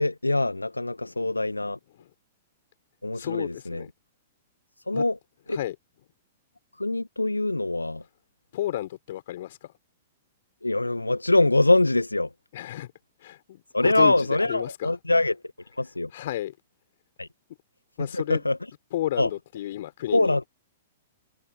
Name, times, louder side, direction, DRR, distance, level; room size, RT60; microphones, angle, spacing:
voice 1, 0.0-1.8 3.0-3.8 4.9-5.2 5.5-5.6 6.8-8.0 10.6-12.3 13.7-15.4 15.8-16.1 17.2-17.3 18.1-18.6 19.2-19.3 20.1-20.4, left 2 dB, 85° left, 1.4 m, -23 dB
voice 2, 3.2-3.9 4.9-5.0 5.5-5.8 8.5-9.7 12.5-12.9 13.2-14.9 16.1-16.5 18.0-18.4 18.9-20.4, left 13 dB, 50° left, 5.4 m, -32 dB
open air
figure-of-eight pair, 105°, 0 cm